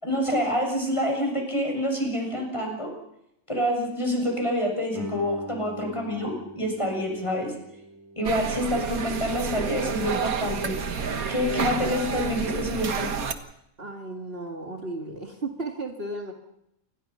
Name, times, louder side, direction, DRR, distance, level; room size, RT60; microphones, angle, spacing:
voice 1, 0.0-2.9 3.5-7.5 8.2-10.7 11.3-13.1, left 1 dB, 20° left, 1 dB, 7.0 m, -27 dB
Guitar, 4.9-10.3, right 2 dB, 15° right, 6.5 m, -44 dB
sound 1, 8.2-13.3, right 6 dB, 85° right, 1.9 m, -29 dB
voice 2, 13.8-16.3, right 2 dB, 45° right, 3 dB, 2.4 m, -34 dB
28.0 x 21.0 x 5.7 m, 0.80 s
omnidirectional pair, 1.5 m